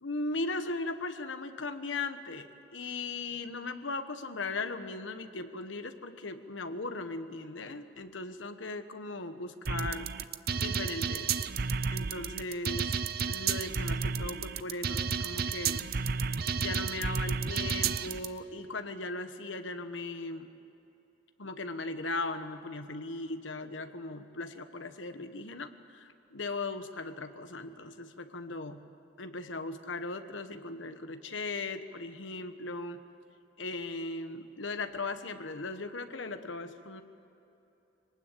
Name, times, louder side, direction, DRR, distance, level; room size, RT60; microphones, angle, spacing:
voice 1, 0.0-10.1 10.5-11.4 11.9-12.9 13.2-15.9 16.6-20.5 21.4-28.8 29.2-33.0 33.6-37.0, left 3 dB, 85° left, 9 dB, 1.2 m, -38 dB
sound 1, 9.7-18.3, right 5 dB, 50° right, 0.6 m, -32 dB
23.5 x 19.0 x 8.4 m, 2.9 s
head